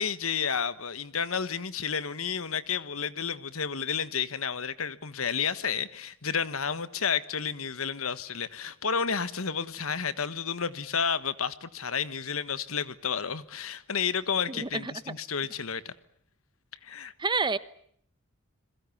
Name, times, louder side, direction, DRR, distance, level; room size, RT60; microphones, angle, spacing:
voice 1, 0.0-15.9 16.8-17.1, left 6 dB, 80° left, 1.4 m, -31 dB
voice 2, 14.5-15.1 17.2-17.6, right 4 dB, 20° right, 1.0 m, -29 dB
28.5 x 22.0 x 7.2 m
head